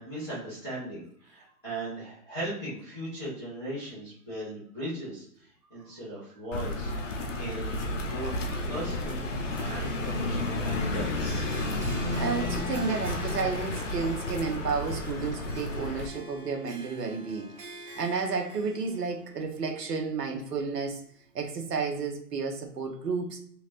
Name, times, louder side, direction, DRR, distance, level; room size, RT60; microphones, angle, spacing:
voice 1, 0.0-8.3 8.7-9.2 9.5-11.5, right 1 dB, 15° right, -11 dB, 0.5 m, -38 dB
sound 1, 6.5-16.1, left 2 dB, 50° left, 0.7 m, -31 dB
Harp, 9.5-20.8, equal, 45° right, 1.0 m, -46 dB
voice 2, 12.2-17.5 18.0-21.0 21.3-23.4, right 5 dB, 80° right, 3 dB, 1.1 m, -31 dB
3.1 x 3.0 x 2.5 m, 0.64 s
hypercardioid pair, 175°, 47 cm